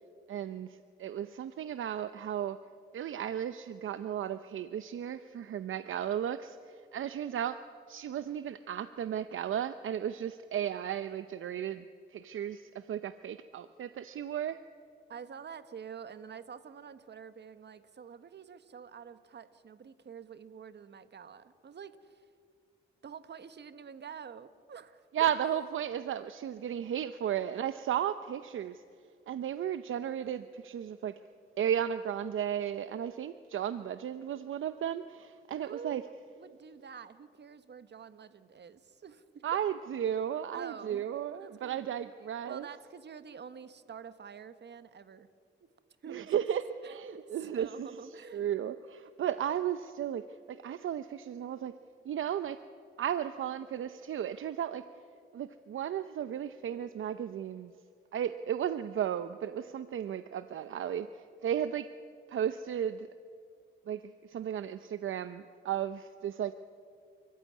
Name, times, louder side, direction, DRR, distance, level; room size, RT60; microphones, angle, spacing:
voice 1, 0.3-2.6 2.9-6.6 6.9-7.6 7.9-11.8 12.1-14.6 25.1-28.8 29.3-31.1 31.6-36.0 39.4-42.7 46.1-47.9 48.3-50.2 50.5-51.7 52.1-52.6 53.0-54.8 55.3-57.7 58.1-61.9 62.3-63.1 63.9-64.0 64.3-66.5, right 9 dB, 75° right, 11 dB, 0.7 m, -34 dB
voice 2, 15.1-22.2 23.0-25.3 35.5-39.6 40.5-41.0 41.4-41.8 42.2-45.3 46.0-46.3 46.8-48.5, right 7 dB, 55° right, 12 dB, 1.3 m, -48 dB
30.0 x 15.0 x 9.6 m, 2.2 s
cardioid pair, 85°, 21 cm